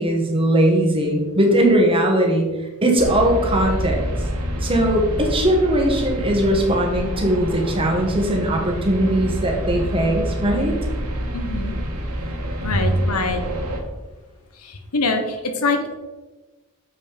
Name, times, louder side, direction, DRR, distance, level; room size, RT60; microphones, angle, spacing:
voice 1, 0.0-2.4 2.8-4.0 4.6-10.7 12.7-12.8, right 1 dB, 25° right, 1 dB, 1.5 m, -19 dB
sound 1, 3.0-13.8, equal, 90° right, 1.5 m, -27 dB
voice 2, 11.3-11.8 12.6-13.4 14.6-15.9, left 3 dB, 85° left, 6 dB, 1.1 m, -24 dB
7.3 x 5.3 x 5.2 m, 1.2 s
head